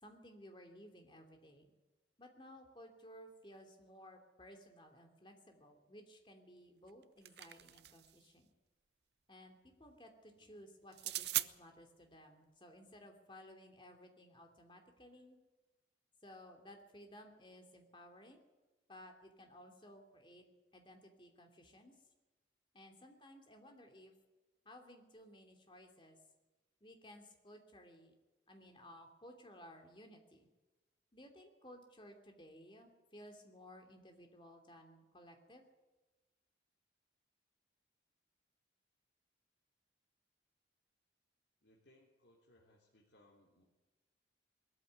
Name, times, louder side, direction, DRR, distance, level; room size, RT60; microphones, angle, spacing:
voice 1, 0.0-1.7 2.2-8.5 9.3-15.4 16.2-18.4 18.9-20.4 20.7-22.0 22.7-24.1 24.6-26.2 26.8-28.1 28.5-30.5 31.1-35.7, equal, 25° left, 4 dB, 2.9 m, -57 dB
sound 1, 6.9-8.2 10.9-11.5, right 15 dB, 65° right, 0.7 m, -39 dB
voice 2, 41.6-43.6, left 1 dB, 70° left, -2 dB, 3.2 m, -68 dB
20.5 x 14.0 x 9.4 m, 1.1 s
head